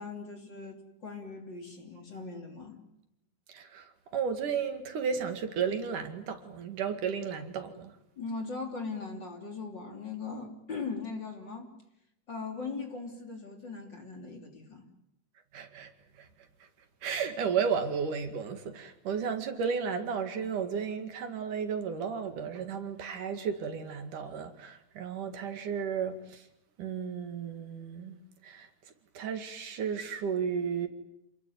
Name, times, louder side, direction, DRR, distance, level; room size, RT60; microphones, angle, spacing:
voice 1, 0.0-2.8 8.2-11.7 12.3-14.9, left 4 dB, 35° left, 3.7 m, -39 dB
voice 2, 3.5-7.9 15.5-16.3 16.6-16.7 17.0-26.5 26.8-28.2 28.4-28.7 29.2-30.9, right 6 dB, 70° right, 3.6 m, -33 dB
28.5 x 21.0 x 9.4 m
omnidirectional pair, 3.9 m